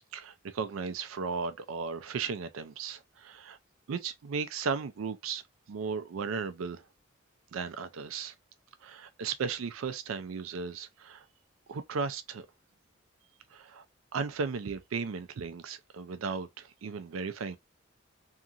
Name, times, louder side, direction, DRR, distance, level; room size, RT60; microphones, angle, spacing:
voice 1, 0.1-3.6 3.9-5.4 5.7-6.8 7.5-8.3 8.8-11.3 11.7-12.4 13.5-13.8 14.1-17.6, right 5 dB, 75° right, 0.4 m, -35 dB
2.8 x 2.4 x 2.4 m
head